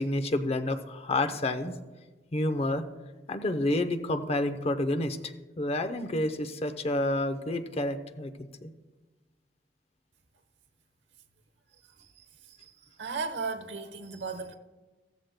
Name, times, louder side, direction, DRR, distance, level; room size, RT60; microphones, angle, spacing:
voice 1, 0.0-1.7 2.3-2.8 3.3-8.7, left 1 dB, 35° left, 0.7 m, -29 dB
voice 2, 13.0-14.5, right 4 dB, 85° right, 1.0 m, -35 dB
15.0 x 14.5 x 2.2 m
head